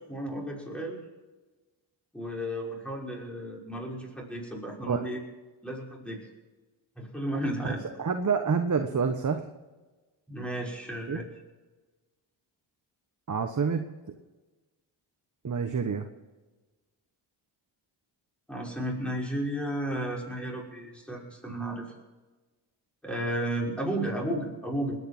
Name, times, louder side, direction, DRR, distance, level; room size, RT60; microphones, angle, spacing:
voice 1, 0.1-1.0 2.1-5.2 5.6-6.2 7.0-7.8 10.3-11.3 18.5-21.9 23.0-25.0, right 1 dB, ahead, -2 dB, 5.8 m, -33 dB
voice 2, 7.6-9.5 11.1-11.2 13.3-13.9 15.4-16.1, right 5 dB, 40° right, 6 dB, 1.3 m, -28 dB
20.0 x 9.6 x 6.1 m, 1.2 s
cardioid pair, 55°, 48 cm